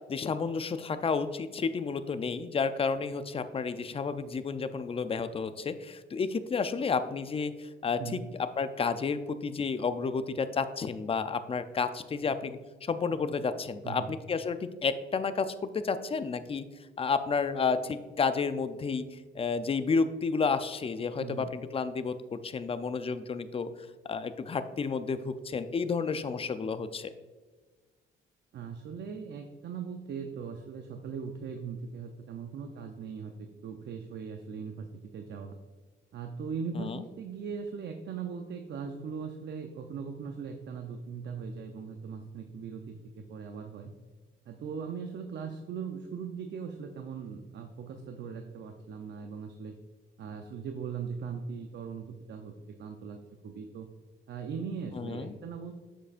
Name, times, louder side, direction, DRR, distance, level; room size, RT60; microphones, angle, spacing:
voice 1, 0.1-16.6 17.0-23.7 24.1-27.1 36.8-37.0 55.0-55.3, left 5 dB, 30° left, 11 dB, 0.5 m, -31 dB
voice 2, 8.0-8.3 13.8-14.2 21.2-21.5 28.5-35.6 36.1-43.9 44.5-49.7 50.2-52.5 52.8-53.9 54.3-55.7, right 6 dB, 60° right, 5 dB, 0.6 m, -39 dB
7.5 x 6.8 x 2.5 m, 1.4 s
cardioid pair, 90°, 20 cm